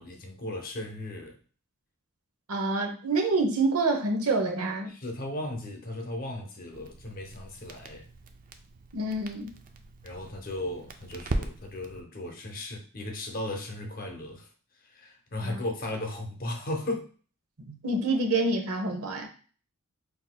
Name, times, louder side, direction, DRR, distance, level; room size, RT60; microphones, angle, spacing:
voice 1, 0.0-1.4 4.9-8.1 10.0-14.5 14.8-17.1, left 1 dB, 40° left, 3 dB, 0.8 m, -36 dB
voice 2, 2.5-4.9 8.9-9.5 15.4-15.6 17.6-19.3, right 2 dB, 75° right, 3 dB, 0.8 m, -27 dB
Crackle, 6.7-12.0, right 2 dB, 40° right, 0.4 m, -39 dB
5.8 x 2.7 x 2.2 m, 0.40 s
head